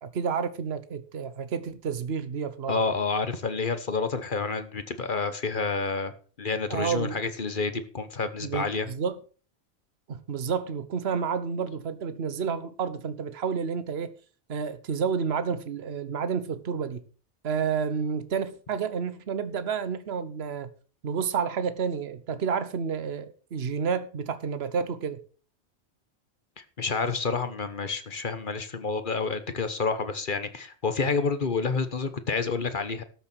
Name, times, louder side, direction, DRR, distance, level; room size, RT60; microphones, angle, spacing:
voice 1, 0.0-2.8 6.7-7.2 8.4-9.2 10.1-14.1 14.5-17.0 17.4-20.7 21.0-25.2, right 6 dB, 65° right, 1.3 m, -30 dB
voice 2, 2.7-6.1 6.4-8.9 26.6-33.0, left 4 dB, 45° left, 1.3 m, -29 dB
13.0 x 6.9 x 6.0 m
omnidirectional pair, 1.2 m